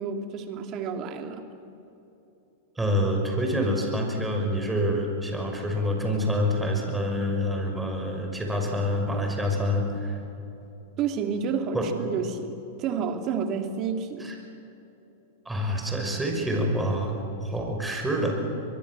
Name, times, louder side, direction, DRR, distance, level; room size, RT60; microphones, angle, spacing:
voice 1, 0.0-1.4 11.0-14.3, right 6 dB, 40° right, 6 dB, 2.8 m, -30 dB
voice 2, 2.8-10.2 11.7-11.9 14.2-14.3 15.5-18.4, equal, 10° right, 2 dB, 5.9 m, -27 dB
23.5 x 23.0 x 7.6 m, 3.0 s
hypercardioid pair, 110°, 0 cm